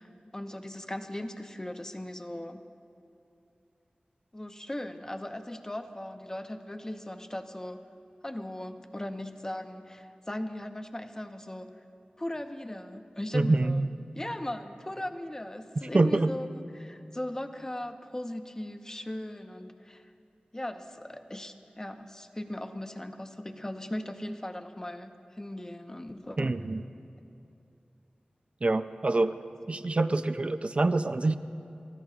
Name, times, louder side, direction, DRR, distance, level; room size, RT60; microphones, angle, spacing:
voice 1, 0.0-2.6 4.3-7.8 8.2-11.8 12.2-13.8 14.2-16.5 16.7-20.1 20.5-26.6, left 1 dB, 20° left, 7 dB, 0.7 m, -38 dB
voice 2, 13.3-13.9 15.9-16.3 26.4-26.8 28.6-29.3 29.7-31.3, right 2 dB, 45° right, 9 dB, 0.4 m, -25 dB
29.5 x 14.0 x 2.5 m, 2.7 s
wide cardioid pair, 75°, 3 cm